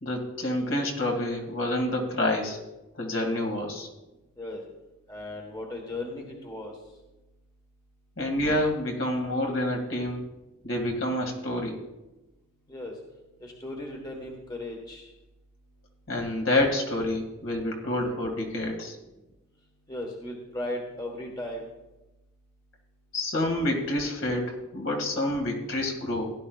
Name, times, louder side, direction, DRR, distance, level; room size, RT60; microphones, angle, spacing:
voice 1, 0.0-2.6 2.9-3.9 8.2-10.2 10.6-11.8 16.1-19.0 23.1-26.3, left 1 dB, 60° left, 1 dB, 2.1 m, -28 dB
voice 2, 5.1-6.8 12.7-13.0 13.4-15.1 19.9-21.6, left 1 dB, 20° left, 1 dB, 1.3 m, -36 dB
16.5 x 11.0 x 2.4 m, 1.0 s
head